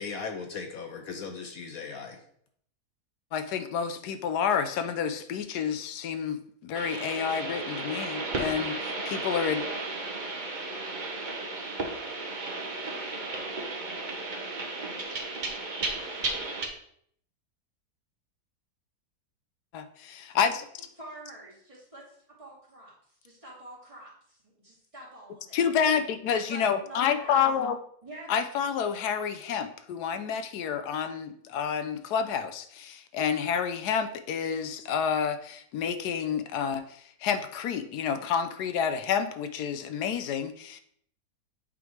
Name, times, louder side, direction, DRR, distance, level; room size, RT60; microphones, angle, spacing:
voice 1, 0.0-2.2, left 5 dB, 65° left, 5 dB, 1.1 m, -38 dB
voice 2, 3.3-9.7 19.7-20.7 25.5-27.8 28.3-40.8, left 7 dB, 85° left, 10 dB, 1.2 m, -29 dB
sound 1, 6.7-16.7, right 3 dB, 35° right, 0.9 m, -34 dB
voice 3, 21.0-25.9 26.3-27.4 28.0-28.3, right 2 dB, 20° right, -6 dB, 2.3 m, -47 dB
8.4 x 3.9 x 4.5 m, 0.66 s
omnidirectional pair, 1.7 m